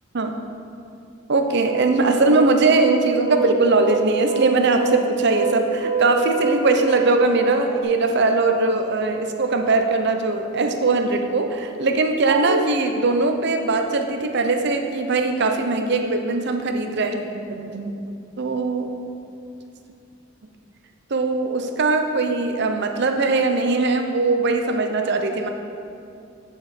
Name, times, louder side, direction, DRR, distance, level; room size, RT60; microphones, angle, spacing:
voice 1, 1.3-17.9 18.4-18.9 21.1-25.5, right 3 dB, 55° right, 5 dB, 0.6 m, -21 dB
sound 1, 1.7-7.8, right 6 dB, 15° right, 0.9 m, -25 dB
9.7 x 4.9 x 4.3 m, 2.6 s
head